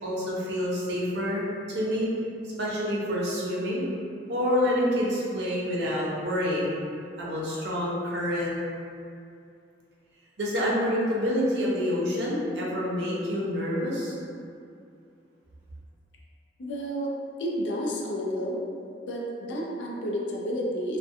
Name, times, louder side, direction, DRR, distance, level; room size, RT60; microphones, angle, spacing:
voice 1, 0.0-2.1 2.6-3.8 4.3-6.8 7.2-8.6 10.4-14.1, equal, 70° right, -5 dB, 0.6 m, -27 dB
voice 2, 16.6-17.1 17.4-18.6 19.1-21.0, equal, 85° left, -2 dB, 0.4 m, -30 dB
2.3 x 2.1 x 2.6 m, 2.4 s
head